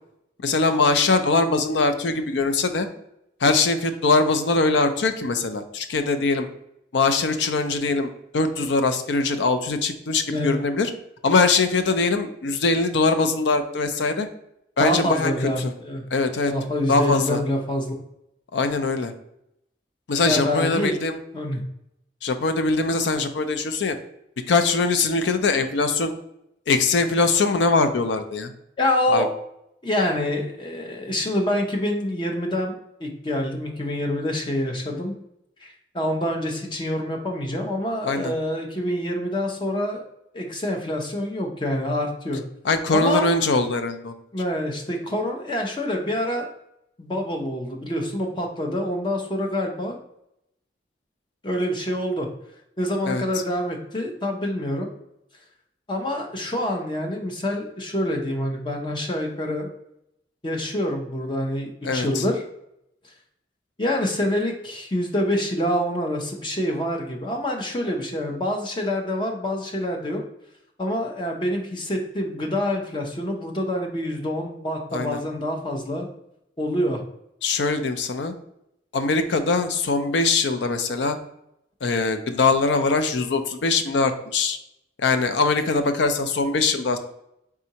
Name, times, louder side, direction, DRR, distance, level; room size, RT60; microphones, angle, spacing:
voice 1, 0.4-2.9 3.4-6.5 6.9-10.9 11.2-14.3 14.8-15.3 15.6-15.7 16.1-16.5 16.9-17.4 18.5-19.1 20.1-21.2 22.2-24.0 24.5-26.1 26.7-28.5 29.1-29.3 38.0-38.3 42.6-44.1 53.1-53.2 61.8-62.2 74.9-75.2 77.4-78.3 78.9-81.2 81.8-84.6 85.0-87.0, left 3 dB, 80° left, 9 dB, 0.5 m, -22 dB
voice 2, 14.8-16.0 16.5-18.0 20.2-20.9 21.3-21.6 28.8-29.3 29.8-35.1 35.6-40.0 40.3-42.4 42.9-43.4 44.3-46.5 47.0-50.0 51.4-52.3 52.8-54.9 55.9-59.7 60.4-62.4 63.8-70.2 70.8-76.1 76.6-77.0, left 1 dB, 25° left, 2 dB, 0.6 m, -26 dB
4.3 x 3.6 x 2.8 m, 0.79 s
head